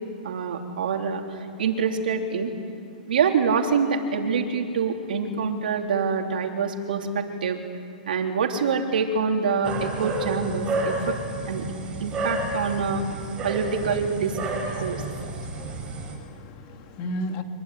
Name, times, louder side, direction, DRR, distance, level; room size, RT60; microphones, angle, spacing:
voice 1, 0.2-1.2 1.6-2.5 3.1-7.6 8.1-11.1 11.5-11.7 12.0-13.0 13.4-14.4 14.8-15.0, right 5 dB, 80° right, 3 dB, 3.3 m, -25 dB
sound 1, 9.6-16.1, right 2 dB, 20° right, 5.1 m, -31 dB
voice 2, 14.8-17.4, left 1 dB, 35° left, 5 dB, 2.4 m, -36 dB
25.0 x 21.5 x 9.5 m, 2.6 s
hypercardioid pair, 155°, 5 cm